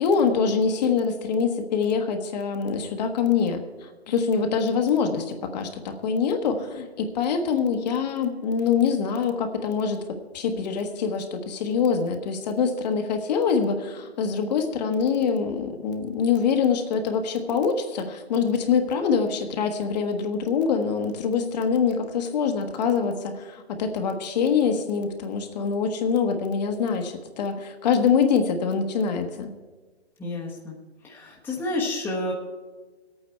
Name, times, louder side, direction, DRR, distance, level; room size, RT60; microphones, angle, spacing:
voice 1, 0.0-10.0 10.3-29.5, left 6 dB, 40° left, 5 dB, 1.3 m, -24 dB
voice 2, 30.2-30.8 31.0-32.3, left 2 dB, 5° left, -3 dB, 1.2 m, -30 dB
20.0 x 8.9 x 4.5 m, 1.3 s
hypercardioid pair, 140°, 33 cm